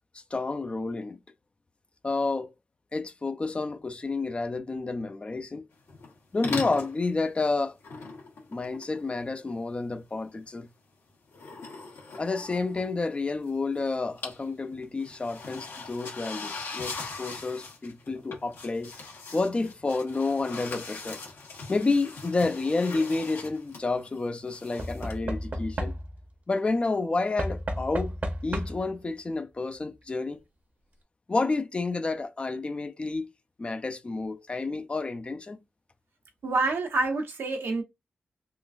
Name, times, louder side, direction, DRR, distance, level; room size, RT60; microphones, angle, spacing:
voice 1, 0.1-1.2 2.0-2.5 2.9-5.7 6.3-7.8 8.5-10.7 12.2-18.9 19.3-21.2 21.7-25.9 26.5-28.2 28.4-30.4 31.3-33.3 33.6-35.6, left 3 dB, 30° left, 0.4 m, -30 dB
sound 1, 5.9-6.2 6.4-7.0 7.8-9.5 11.3-13.5 13.8-14.5 14.7-25.1, left 4 dB, 85° left, 1.3 m, -41 dB
Knock / Wood, 22.6-23.1 24.8-26.3 27.4-29.0 30.0-30.1 30.3-30.4, equal, 45° right, 0.8 m, -33 dB
voice 2, 36.4-37.8, right 3 dB, 80° right, 1.0 m, -27 dB
3.7 x 2.5 x 2.4 m
wide cardioid pair, 120°, 4 cm